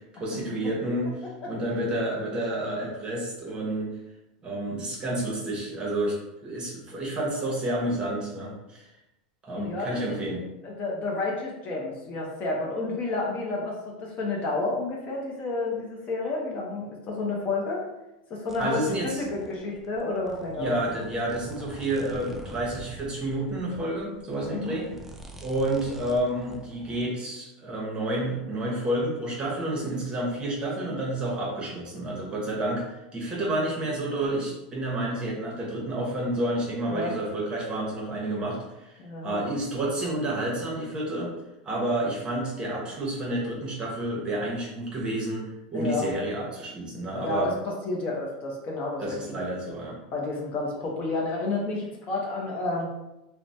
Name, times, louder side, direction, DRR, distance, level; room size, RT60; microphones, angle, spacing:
voice 1, 0.2-1.1 1.5-3.9 4.4-6.2 6.4-8.8 9.4-10.4 18.6-19.2 20.6-24.9 25.4-41.3 41.6-47.5 49.0-50.0, right 1 dB, 25° right, -3 dB, 0.9 m, -30 dB
voice 2, 9.5-10.2 10.6-17.8 18.3-20.7 24.5-24.8 36.9-37.1 39.0-39.4 45.7-46.1 47.1-47.5 47.8-49.4 50.1-52.9, left 3 dB, 35° left, -2 dB, 0.6 m, -30 dB
sound 1, 18.5-27.1, right 1 dB, 5° right, 0.3 m, -45 dB
3.0 x 2.1 x 2.6 m, 0.94 s
supercardioid pair, 120°, 4 cm